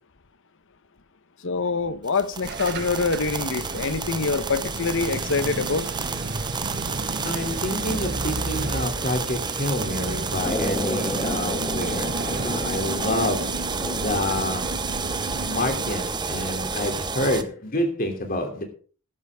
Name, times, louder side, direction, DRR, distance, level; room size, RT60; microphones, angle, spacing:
voice 1, 1.4-5.9, left 4 dB, 60° left, 1.0 m, -25 dB
sound 1, 2.1-17.4, right 4 dB, 20° right, 0.8 m, -30 dB
sound 2, 2.4-15.9, right 2 dB, 50° right, 1.1 m, -33 dB
voice 2, 7.2-13.6 13.9-14.7 15.5-18.6, left 1 dB, 40° left, 2.8 m, -28 dB
sound 3, 10.4-14.4, left 1 dB, 15° left, 1.7 m, -32 dB
13.5 x 12.5 x 3.6 m
head